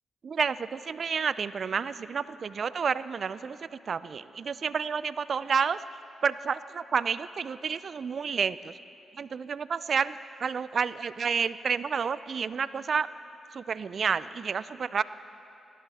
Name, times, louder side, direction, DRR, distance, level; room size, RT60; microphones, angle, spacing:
voice 1, 0.2-3.6 3.9-5.8 6.2-8.7 9.2-13.1 13.5-15.0, right 6 dB, 60° right, 16 dB, 0.4 m, -30 dB
18.0 x 17.0 x 4.2 m, 2.7 s
hypercardioid pair, 45°, 0 cm